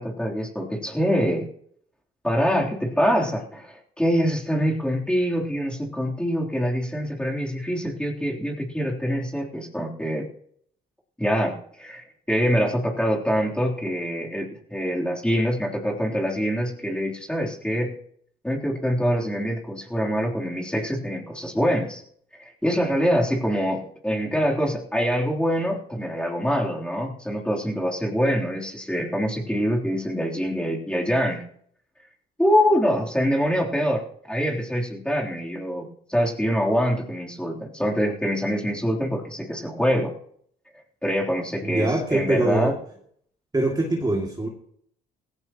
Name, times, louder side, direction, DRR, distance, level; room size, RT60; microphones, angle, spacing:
voice 1, 0.0-1.5 2.2-10.3 11.2-17.9 18.4-22.0 22.4-31.4 32.4-40.1 41.0-42.7, equal, 5° left, -3 dB, 3.5 m, -25 dB
voice 2, 41.6-42.7 43.5-44.5, right 2 dB, 20° right, -1 dB, 2.5 m, -23 dB
17.0 x 15.5 x 3.0 m, 0.64 s
cardioid pair, 90°, 20 cm